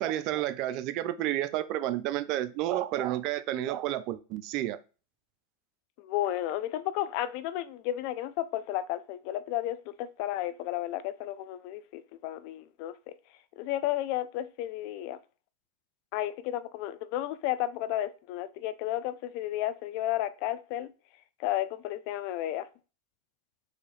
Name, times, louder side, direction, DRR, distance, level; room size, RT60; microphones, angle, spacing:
voice 1, 0.0-4.8, right 13 dB, 50° right, 0.4 m, -30 dB
voice 2, 6.0-13.1 13.6-15.2 16.1-20.9 21.4-22.7, left 13 dB, 55° left, 0.3 m, -33 dB
4.0 x 2.7 x 3.2 m
hypercardioid pair, 120°, 0 cm